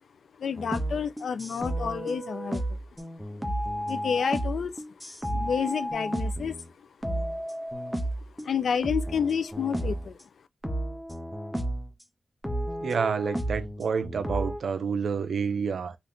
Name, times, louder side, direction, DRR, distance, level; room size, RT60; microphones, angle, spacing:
voice 1, 0.4-2.6 3.9-4.8 5.3-6.6 8.4-10.2, left 7 dB, 80° left, 0.3 m, -29 dB
sound 1, 0.6-6.7 7.0-8.5 8.8-10.1 10.6-11.9 12.4-14.6, right 1 dB, ahead, 0.5 m, -32 dB
voice 2, 12.8-16.0, right 6 dB, 70° right, 0.4 m, -29 dB
2.6 x 2.4 x 3.4 m
wide cardioid pair, 180°, 0 cm